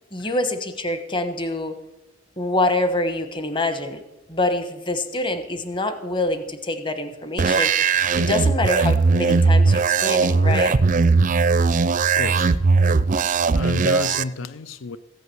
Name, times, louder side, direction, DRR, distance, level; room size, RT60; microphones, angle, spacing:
voice 1, 0.1-1.8 2.4-4.0 4.3-7.7 8.2-10.7, left 2 dB, 25° left, 1.1 m, -25 dB
sound 1, 7.4-14.2, right 4 dB, 40° right, 0.4 m, -19 dB
voice 2, 12.0-12.6 13.1-15.0, left 4 dB, 80° left, 0.6 m, -32 dB
15.0 x 8.4 x 7.8 m
head